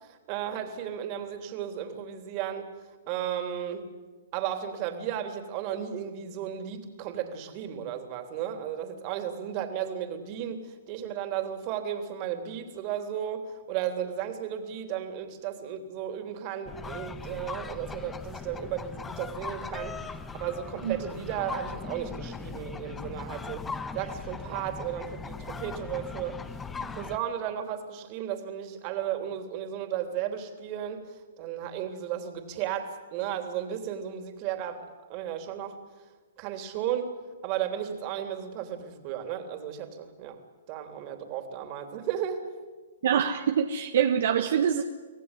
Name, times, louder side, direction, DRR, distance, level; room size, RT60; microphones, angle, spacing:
voice 1, 0.1-2.7 3.1-3.9 4.3-19.9 20.3-23.6 23.9-26.4 26.8-31.0 31.4-34.8 35.1-35.8 36.4-37.1 37.4-40.4 40.7-42.4, right 9 dB, 40° right, 7 dB, 3.3 m, -34 dB
sound 1, 16.7-27.2, left 4 dB, 10° left, 1.2 m, -39 dB
voice 2, 43.0-44.8, right 8 dB, 65° right, 6 dB, 1.3 m, -24 dB
25.5 x 17.0 x 9.9 m, 1.4 s
hypercardioid pair, 130°, 0 cm